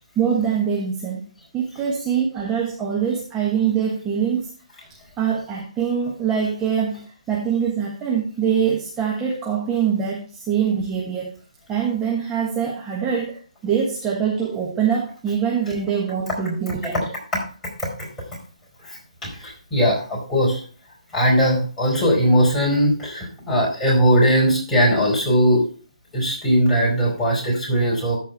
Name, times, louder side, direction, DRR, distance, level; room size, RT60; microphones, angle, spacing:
voice 1, 0.1-1.3 1.5-4.5 5.2-11.3 11.7-17.0, right 7 dB, 15° right, -3 dB, 1.4 m, -23 dB
voice 2, 18.8-20.6 21.1-25.7 26.1-28.2, equal, 10° left, -4 dB, 4.5 m, -19 dB
14.0 x 4.6 x 4.5 m, 0.39 s
hypercardioid pair, 155°, 4 cm